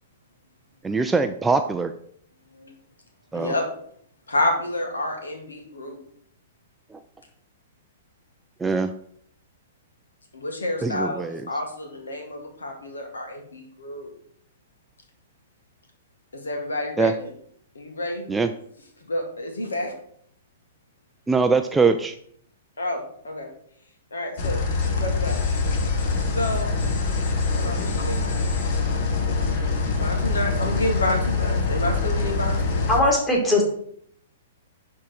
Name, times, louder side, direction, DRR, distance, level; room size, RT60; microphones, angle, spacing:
voice 1, 0.8-1.9 3.3-3.5 8.6-8.9 10.8-11.4 17.0-17.1 18.3-18.5 21.3-22.1, right 4 dB, 10° right, 7 dB, 0.4 m, -22 dB
voice 2, 3.3-3.7 4.3-6.0 10.3-14.1 16.3-17.3 17.8-18.3 19.1-19.9 22.8-23.5 24.1-25.4 26.2-26.7 27.5-28.2 29.9-32.9, left 1 dB, 75° left, 3 dB, 2.0 m, -29 dB
sound 1, 24.4-33.0, left 4 dB, 45° left, 1.5 m, -24 dB
voice 3, 32.9-33.6, left 1 dB, 10° left, -1 dB, 2.3 m, -19 dB
11.0 x 3.8 x 4.7 m, 0.65 s
figure-of-eight pair, 110°, 0 cm